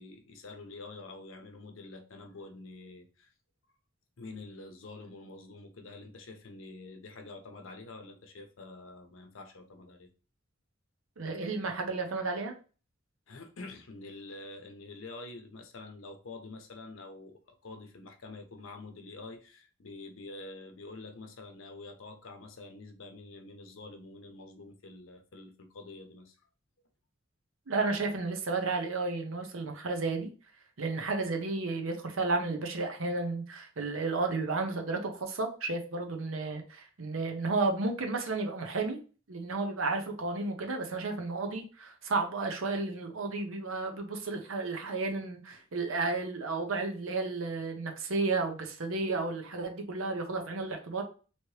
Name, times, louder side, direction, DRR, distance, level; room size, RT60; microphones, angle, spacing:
voice 1, 0.0-3.3 4.2-10.1 13.3-26.5, left 3 dB, 70° left, 0.7 m, -47 dB
voice 2, 11.2-12.5 27.7-30.3 30.8-39.0 39.3-51.0, right 3 dB, 75° right, 0.8 m, -32 dB
3.0 x 2.9 x 3.1 m
head